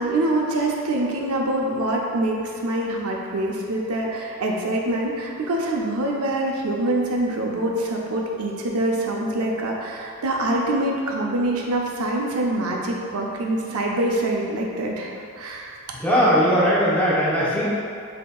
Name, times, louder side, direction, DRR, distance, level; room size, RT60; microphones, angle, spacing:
voice 1, 0.0-15.7, right 1 dB, 85° right, -1 dB, 0.6 m, -25 dB
voice 2, 16.0-17.6, equal, 5° left, -8 dB, 0.9 m, -19 dB
7.7 x 2.8 x 2.3 m, 2.4 s
head